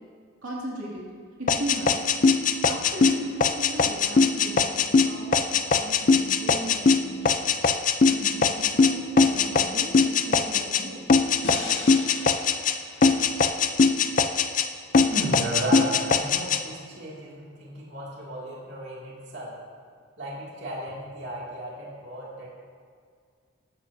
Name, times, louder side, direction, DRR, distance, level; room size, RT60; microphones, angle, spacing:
voice 1, 0.4-1.0 1.4-2.1 2.6-7.5 8.1-11.1, right 1 dB, 80° right, -5 dB, 2.4 m, -37 dB
sound 1, 1.5-10.8 11.1-12.8 13.0-14.7 14.9-16.6, left 5 dB, 40° left, 0.5 m, -21 dB
sound 2, 11.4-14.6, left 3 dB, 65° left, 1.6 m, -40 dB
voice 2, 15.1-19.5 20.2-22.5, right 1 dB, 55° right, -6 dB, 2.5 m, -34 dB
14.0 x 12.5 x 2.7 m, 2.1 s
head